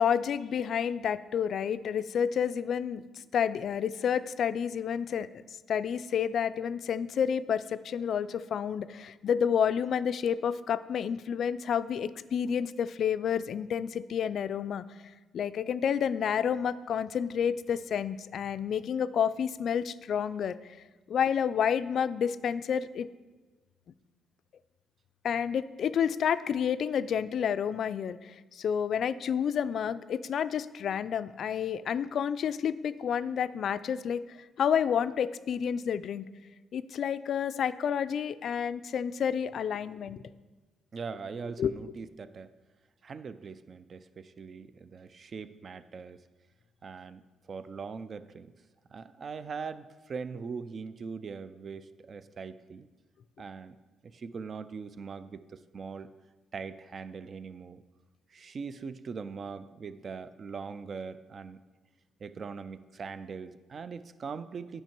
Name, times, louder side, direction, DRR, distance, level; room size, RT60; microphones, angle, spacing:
voice 1, 0.0-3.0 3.3-5.4 5.7-14.8 15.3-20.6 21.1-23.1 25.2-36.3 36.7-40.2 41.6-41.7, left 8 dB, 60° left, 14 dB, 0.3 m, -30 dB
voice 2, 40.9-42.5 43.0-46.2 46.8-47.2 47.5-48.5 48.9-52.9 53.4-53.8 54.1-56.1 56.5-57.8 58.3-61.6 62.2-64.8, right 5 dB, 45° right, 13 dB, 0.4 m, -41 dB
9.0 x 5.7 x 4.5 m, 1.2 s
cardioid pair, 90°, 0 cm